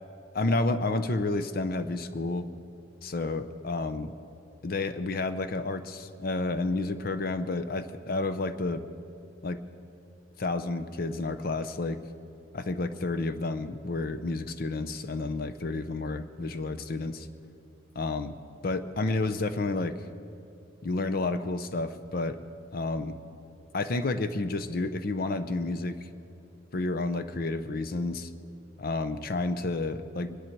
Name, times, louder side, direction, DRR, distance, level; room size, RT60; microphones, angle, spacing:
voice 1, 0.3-2.5 3.0-4.1 4.6-8.9 9.4-9.6 10.4-12.0 12.5-17.3 18.0-18.4 18.6-20.0 20.8-22.4 22.7-23.2 23.7-26.1 26.7-28.3 28.8-30.4, left 2 dB, 45° left, 10 dB, 0.6 m, -30 dB
23.0 x 10.5 x 4.6 m, 2.7 s
head